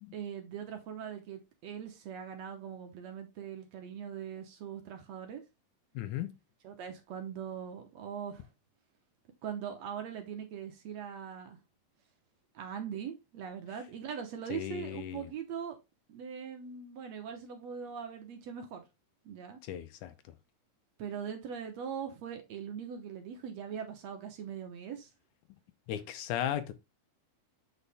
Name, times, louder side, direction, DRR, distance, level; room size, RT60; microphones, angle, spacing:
voice 1, 0.1-5.4 6.6-8.5 9.4-11.6 12.6-15.8 16.1-18.9 19.3-19.6 21.0-25.1, right 8 dB, 65° right, 1.9 m, -41 dB
voice 2, 6.0-6.3 14.5-15.2 19.6-20.1 25.9-26.7, left 11 dB, 75° left, 2.1 m, -36 dB
8.3 x 4.8 x 3.4 m
omnidirectional pair, 3.7 m